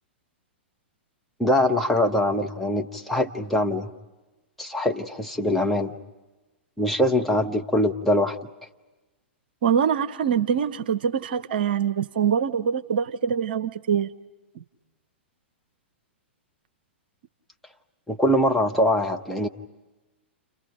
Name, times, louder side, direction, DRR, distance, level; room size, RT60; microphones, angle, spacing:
voice 1, 1.4-3.9 4.6-5.9 6.8-8.4 18.1-19.5, left 1 dB, ahead, 1.4 m, -23 dB
voice 2, 9.6-14.1 14.5-14.6, right 8 dB, 55° right, 0.9 m, -24 dB
30.0 x 30.0 x 5.2 m
figure-of-eight pair, 105°, 6 cm